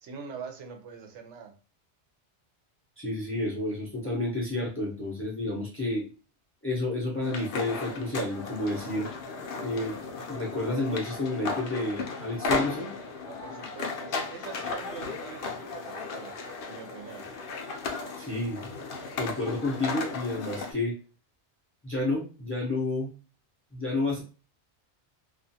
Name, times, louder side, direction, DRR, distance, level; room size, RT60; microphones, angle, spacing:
voice 1, 0.0-1.5 13.2-16.4 16.6-17.3, right 6 dB, 80° right, 0.9 m, -43 dB
voice 2, 3.0-6.1 6.6-9.1 9.6-10.0 10.3-12.9 18.2-18.6 19.2-21.0 21.8-23.1 23.7-24.2, left 2 dB, 15° left, 0.5 m, -30 dB
sound 1, 7.2-20.7, left 3 dB, 60° left, 0.7 m, -35 dB
2.4 x 2.3 x 2.7 m
omnidirectional pair, 1.2 m